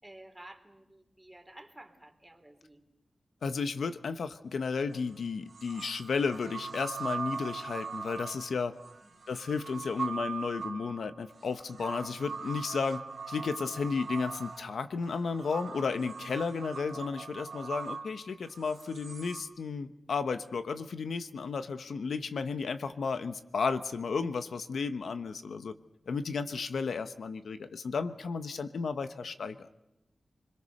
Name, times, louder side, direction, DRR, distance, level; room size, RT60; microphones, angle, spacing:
voice 1, 0.0-2.8 9.0-9.1, right 1 dB, 10° right, 5 dB, 3.5 m, -53 dB
voice 2, 3.4-8.7 9.3-25.7 26.1-29.7, left 5 dB, 85° left, 10 dB, 1.1 m, -33 dB
sound 1, 4.9-5.0 5.5-19.4, right 5 dB, 60° right, 2.2 m, -41 dB
28.5 x 22.0 x 6.7 m, 0.90 s
wide cardioid pair, 100°, 0 cm